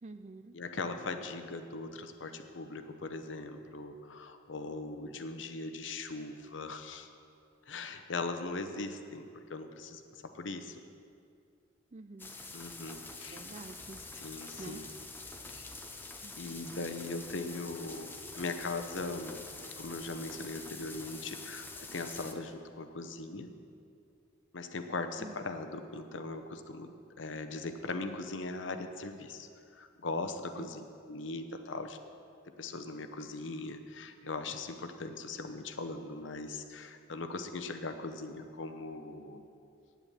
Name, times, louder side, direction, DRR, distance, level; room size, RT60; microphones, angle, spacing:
voice 1, 0.0-0.6 11.9-12.3 13.3-14.0 14.6-14.8 16.2-16.3 25.2-25.4 30.6-30.7, right 3 dB, 35° right, 11 dB, 0.5 m, -47 dB
voice 2, 0.5-7.1 7.7-10.8 12.5-13.4 14.2-14.9 15.5-15.7 16.4-19.4 19.8-23.5 24.5-32.0 32.6-39.4, left 3 dB, 75° left, 7 dB, 0.9 m, -40 dB
sound 1, 12.2-22.3, left 3 dB, 10° left, 0.7 m, -46 dB
9.0 x 8.2 x 8.8 m, 2.4 s
head